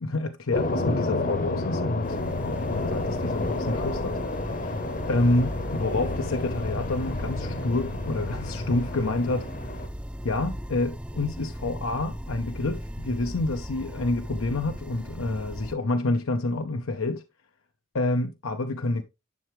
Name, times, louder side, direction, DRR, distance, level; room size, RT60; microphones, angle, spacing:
voice 1, 0.0-4.2 4.5-4.8 5.1-9.5 10.2-17.2 17.9-19.0, left 2 dB, 90° left, 0.8 m, -28 dB
sound 1, 0.5-9.9, left 2 dB, 40° left, 0.9 m, -30 dB
sound 2, 2.0-15.7, equal, 5° right, 0.5 m, -37 dB
11.0 x 5.9 x 3.1 m
head